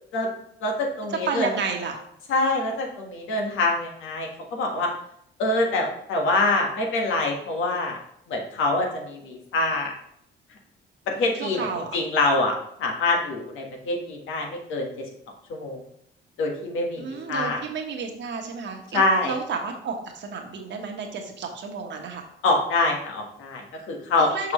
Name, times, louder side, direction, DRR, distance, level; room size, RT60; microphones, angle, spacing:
voice 1, 0.6-1.5 2.3-4.9 5.4-8.0 8.3-9.9 11.1-11.7 11.9-12.5 12.8-15.0 15.5-15.8 16.4-17.6 18.9-19.3 22.4-24.5, left 2 dB, 80° left, 1 dB, 1.4 m, -25 dB
voice 2, 1.2-2.0 11.3-12.0 17.0-22.2 24.2-24.5, right 5 dB, 65° right, 3 dB, 1.3 m, -31 dB
6.0 x 5.8 x 3.1 m, 0.72 s
cardioid pair, 90°, 20 cm